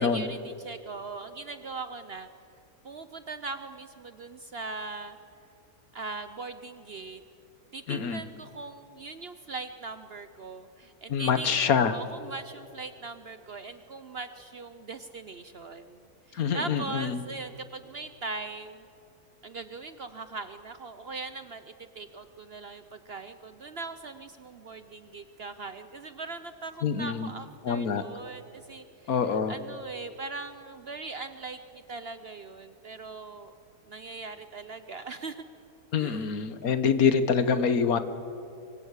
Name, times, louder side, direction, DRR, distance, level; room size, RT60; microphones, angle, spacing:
voice 1, 0.0-2.3 2.8-5.2 5.9-7.2 7.7-18.9 19.4-33.5 33.9-35.4 36.0-36.3, right 3 dB, 50° right, 10 dB, 0.8 m, -40 dB
voice 2, 7.9-8.2 11.1-12.0 16.3-17.2 26.8-27.3 27.6-28.0 29.1-29.5 35.9-38.0, left 6 dB, 65° left, 11 dB, 1.5 m, -25 dB
24.5 x 20.0 x 8.3 m, 2.8 s
omnidirectional pair, 1.7 m